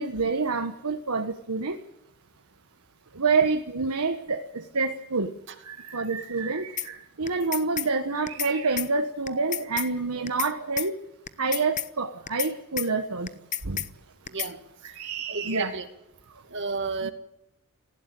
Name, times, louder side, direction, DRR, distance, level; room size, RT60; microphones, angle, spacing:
voice 1, 0.0-1.8 3.1-5.3 5.6-11.0 11.4-13.3 13.6-13.8 14.8-15.7 16.3-16.4 17.0-17.1, right 4 dB, 90° right, 6 dB, 1.4 m, -27 dB
sound 1, 6.8-6.9 7.3-7.9 8.3-8.5 8.8-8.9 9.3-9.9 10.3-10.5 10.8-10.9 11.3-11.9 12.3-12.5 12.8-12.9 13.3-13.9 14.3-14.5, left 10 dB, 35° left, 0.8 m, -31 dB
voice 2, 14.3-14.6 15.3-15.9 16.5-17.1, right 3 dB, 55° right, 8 dB, 2.3 m, -31 dB
19.0 x 16.0 x 9.1 m, 0.85 s
head